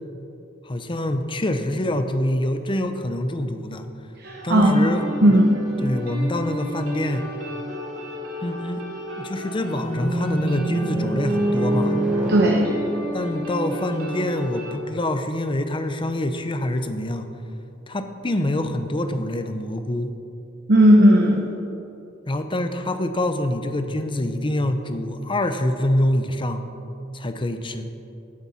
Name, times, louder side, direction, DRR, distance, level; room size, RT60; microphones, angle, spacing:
voice 1, 0.6-3.9 4.4-5.0 5.8-7.3 8.4-8.8 9.2-12.0 13.1-17.3 17.9-20.1 22.3-26.6 27.1-27.9, left 1 dB, 25° left, 8 dB, 0.6 m, -25 dB
voice 2, 4.2-4.8 5.2-5.6 12.3-12.6 20.7-21.5, equal, 55° right, 0 dB, 1.0 m, -15 dB
sound 1, 4.2-14.7, equal, 75° right, 2.8 m, -34 dB
sound 2, 9.7-13.8, right 1 dB, 5° right, 1.0 m, -25 dB
16.5 x 8.2 x 4.2 m, 2.9 s
head